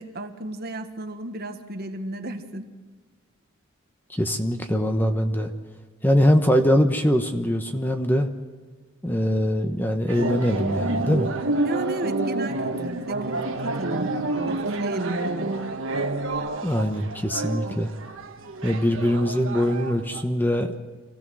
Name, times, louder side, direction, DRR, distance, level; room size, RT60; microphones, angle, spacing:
voice 1, 0.0-2.7 11.6-14.1 14.5-15.5, right 1 dB, 45° right, 5 dB, 1.5 m, -33 dB
voice 2, 4.1-5.5 6.0-8.3 9.0-11.3 16.6-17.9 18.6-20.7, equal, 10° left, 5 dB, 1.1 m, -22 dB
sound 1, 10.1-20.2, right 2 dB, 65° right, 1.5 m, -29 dB
26.5 x 16.5 x 6.3 m, 1.4 s
head